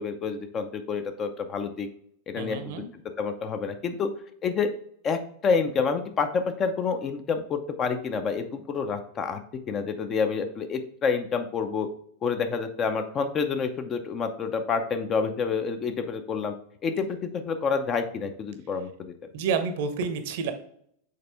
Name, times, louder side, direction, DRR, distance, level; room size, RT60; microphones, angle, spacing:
voice 1, 0.0-1.9 2.3-2.8 3.2-4.1 4.4-4.7 5.0-9.4 9.7-11.9 12.2-16.5 16.8-19.1, left 5 dB, 25° left, 7 dB, 0.7 m, -28 dB
voice 2, 2.4-2.9 19.3-20.5, right 5 dB, 50° right, 9 dB, 0.8 m, -29 dB
6.6 x 4.3 x 3.4 m, 0.66 s
figure-of-eight pair, 90°, 0 cm